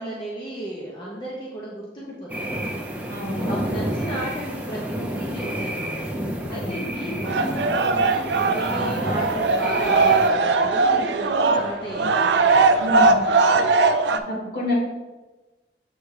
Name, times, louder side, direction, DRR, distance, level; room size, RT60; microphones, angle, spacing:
voice 1, 0.0-2.5 3.4-6.0 6.3-12.5 12.8-13.1 13.4-13.6, equal, 25° left, -5 dB, 1.0 m, -34 dB
sound 1, 2.3-10.3, right 1 dB, 10° right, 0.7 m, -30 dB
voice 2, 3.1-3.5 6.5-6.8 12.8-13.2 14.3-14.7, left 1 dB, 60° left, -3 dB, 2.1 m, -28 dB
sound 2, 7.2-14.2, right 3 dB, 80° right, 0.5 m, -20 dB
7.4 x 3.4 x 4.9 m, 1.2 s
head